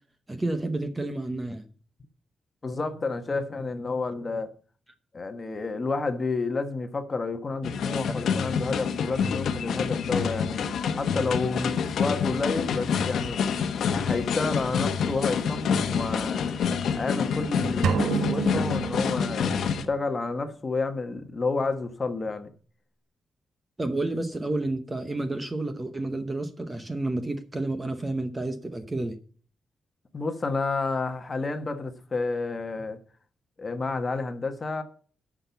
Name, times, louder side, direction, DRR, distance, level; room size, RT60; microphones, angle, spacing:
voice 1, 0.3-1.7 8.1-8.2 23.8-29.2, right 2 dB, 15° right, 0.8 m, -30 dB
voice 2, 2.6-4.5 5.1-13.4 13.9-16.6 16.9-22.5 30.1-33.0 33.6-34.8, left 3 dB, 25° left, 1.1 m, -30 dB
sound 1, 7.6-19.8, left 6 dB, 70° left, 1.0 m, -27 dB
sound 2, 17.8-19.9, right 8 dB, 90° right, 0.8 m, -29 dB
11.0 x 6.2 x 6.9 m
wide cardioid pair, 175°, 0 cm